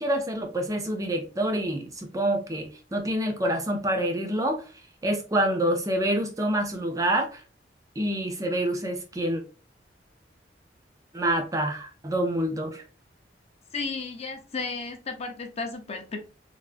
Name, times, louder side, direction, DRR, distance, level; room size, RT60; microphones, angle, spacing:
voice 1, 0.0-4.6 5.0-7.4 8.0-9.4 11.1-12.8, right 1 dB, 20° right, 0.4 m, -27 dB
voice 2, 13.7-16.2, left 4 dB, 35° left, 0.5 m, -33 dB
3.3 x 2.0 x 2.4 m
head